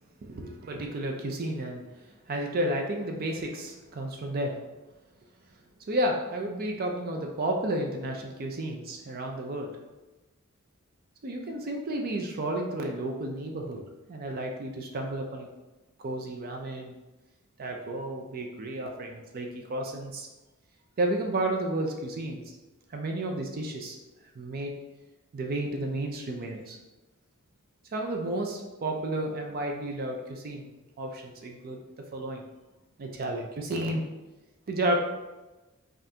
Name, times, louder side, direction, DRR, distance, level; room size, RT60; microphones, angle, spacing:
voice 1, 0.2-1.8 2.3-4.6 5.9-9.7 11.2-13.8 14.1-15.5 16.0-16.9 17.6-20.3 21.0-22.4 22.9-24.0 24.4-24.7 25.3-26.8 27.9-30.7 31.0-31.8 32.1-32.4 33.0-34.0 34.7-35.0, right 1 dB, 45° right, 2 dB, 0.4 m, -32 dB
5.3 x 2.5 x 2.8 m, 1.1 s
head